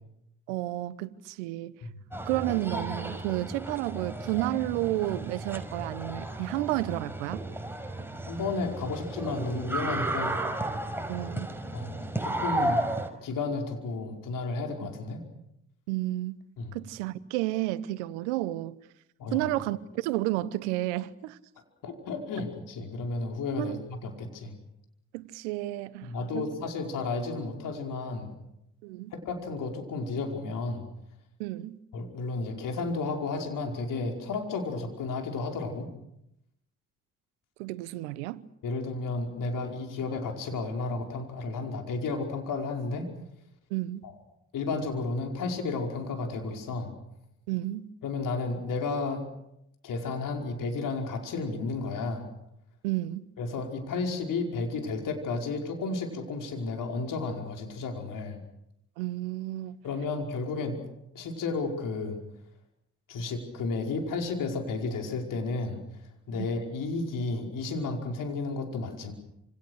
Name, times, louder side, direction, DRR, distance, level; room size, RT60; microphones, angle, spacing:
voice 1, 0.5-1.8 2.3-7.4 11.1-11.5 15.9-16.4 16.7-18.8 19.3-21.4 23.6-23.8 25.1-26.5 28.8-29.1 31.4-31.8 37.6-38.4 43.7-44.0 47.5-47.9 52.8-53.2 59.0-59.8, right 16 dB, 80° right, 1.0 m, -31 dB
sound 1, 2.1-13.1, right 1 dB, 5° right, 5.4 m, -34 dB
voice 2, 8.3-10.4 11.7-12.9 13.2-15.2 16.6-16.8 19.2-19.5 21.8-24.5 26.0-28.4 29.1-30.9 31.9-35.9 38.6-43.1 44.0-44.1 44.5-46.9 48.0-49.3 49.8-52.3 53.4-58.4 59.8-60.8 61.1-62.2 63.1-65.8 66.3-69.1, left 3 dB, 65° left, 5.2 m, -32 dB
28.0 x 27.0 x 6.6 m
hypercardioid pair, 45°, 35 cm